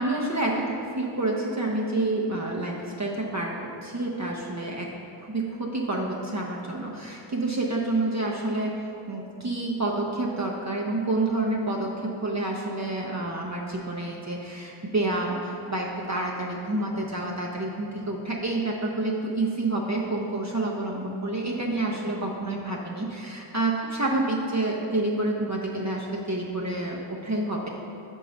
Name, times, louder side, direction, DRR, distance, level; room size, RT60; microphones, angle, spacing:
voice 1, 0.0-4.9 5.2-8.8 9.1-27.7, right 2 dB, 35° right, -2 dB, 0.6 m, -28 dB
5.5 x 4.5 x 5.1 m, 2.8 s
wide cardioid pair, 60°, 49 cm